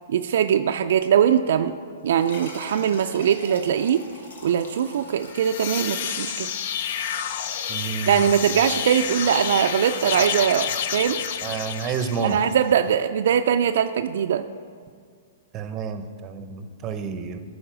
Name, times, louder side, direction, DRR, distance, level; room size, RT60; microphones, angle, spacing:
voice 1, 0.1-1.7 2.0-4.0 4.4-6.5 8.1-11.2 12.2-14.4, right 8 dB, 70° right, 7 dB, 0.3 m, -21 dB
sound 1, 2.1-7.2, left 2 dB, 80° left, 1.4 m, -44 dB
sound 2, 5.2-12.6, left 8 dB, 60° left, 0.5 m, -29 dB
voice 2, 7.7-8.4 11.4-12.4 15.5-17.4, right 6 dB, 30° right, 9 dB, 0.6 m, -30 dB
11.0 x 4.1 x 6.1 m, 2.1 s
hypercardioid pair, 140°, 0 cm